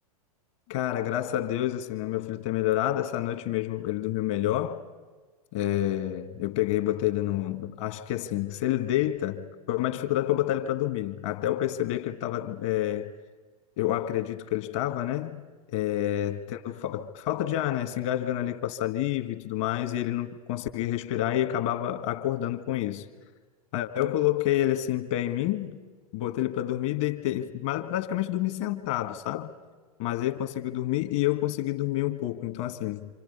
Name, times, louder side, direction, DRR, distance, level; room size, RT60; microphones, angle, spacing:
voice 1, 0.7-4.8 5.5-13.1 13.8-15.4 15.7-23.0 23.7-25.8 26.1-29.5 30.0-33.1, left 13 dB, 55° left, 1.7 m, -28 dB
27.5 x 27.0 x 5.5 m
hypercardioid pair, 105°, 20 cm